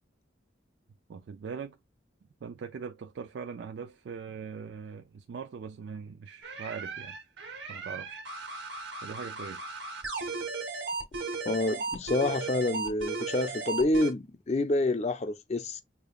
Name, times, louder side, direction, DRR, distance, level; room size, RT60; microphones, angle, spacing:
voice 1, 1.1-1.8 2.4-7.2 7.7-8.2 8.5-9.7, right 6 dB, 65° right, 0.3 m, -41 dB
sound 1, 6.4-14.1, right 3 dB, 85° right, 1.6 m, -36 dB
voice 2, 11.4-15.8, left 2 dB, 35° left, 0.5 m, -28 dB
6.7 x 2.3 x 2.3 m
head